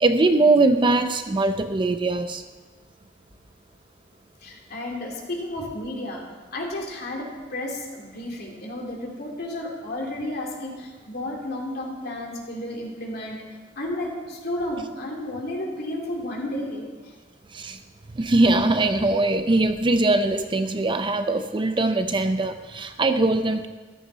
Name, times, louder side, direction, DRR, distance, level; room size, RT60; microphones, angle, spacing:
voice 1, 0.0-2.4 17.5-17.8 18.1-23.7, right 2 dB, 25° right, 9 dB, 0.5 m, -21 dB
voice 2, 4.4-6.2 6.5-13.4 13.8-16.9, left 1 dB, 55° left, -1 dB, 2.8 m, -32 dB
14.5 x 13.0 x 4.0 m, 1.3 s
head